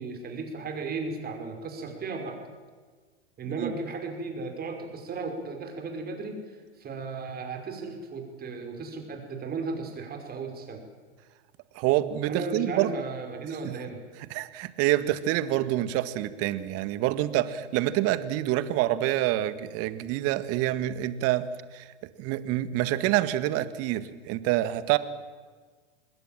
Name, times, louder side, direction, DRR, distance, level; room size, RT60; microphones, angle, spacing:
voice 1, 0.0-2.4 3.4-10.8 12.3-14.0, right 3 dB, 25° right, 4 dB, 5.6 m, -35 dB
voice 2, 11.7-12.9 13.6-13.7 14.3-21.5 21.7-21.8 22.2-25.0, right 14 dB, 45° right, 13 dB, 1.8 m, -27 dB
26.5 x 20.5 x 7.5 m, 1.5 s
hypercardioid pair, 105°, 34 cm